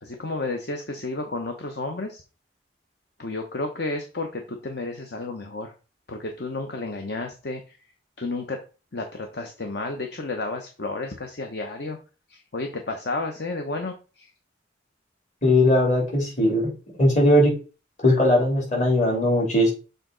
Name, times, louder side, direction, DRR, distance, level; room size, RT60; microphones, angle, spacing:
voice 1, 0.0-2.2 3.2-5.7 6.1-7.8 8.2-8.6 8.9-12.0 12.3-14.3, left 2 dB, 60° left, 4 dB, 0.8 m, -32 dB
voice 2, 15.4-16.7 17.0-17.5 18.0-19.7, left 1 dB, 40° left, -2 dB, 2.8 m, -19 dB
6.8 x 3.9 x 3.9 m, 0.33 s
head